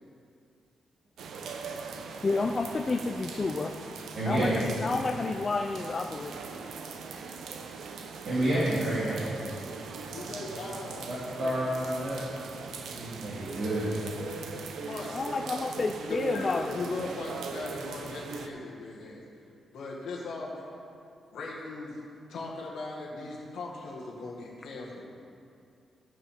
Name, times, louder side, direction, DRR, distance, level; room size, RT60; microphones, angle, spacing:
sound 1, 1.2-18.5, right 5 dB, 85° right, 0.8 m, -40 dB
voice 1, 2.2-3.8 4.3-6.4 15.1-16.8, left 3 dB, 30° left, 4 dB, 0.4 m, -30 dB
voice 2, 4.1-4.6 8.2-9.5 11.1-12.2 12.8-13.9, right 1 dB, 70° right, -9 dB, 2.4 m, -29 dB
voice 3, 10.0-11.5 14.5-15.3 16.1-19.2 19.7-20.7 21.3-22.0 22.3-25.1, left 3 dB, 90° left, -4 dB, 1.7 m, -39 dB
15.5 x 5.9 x 5.1 m, 2.5 s
wide cardioid pair, 135°, 0 cm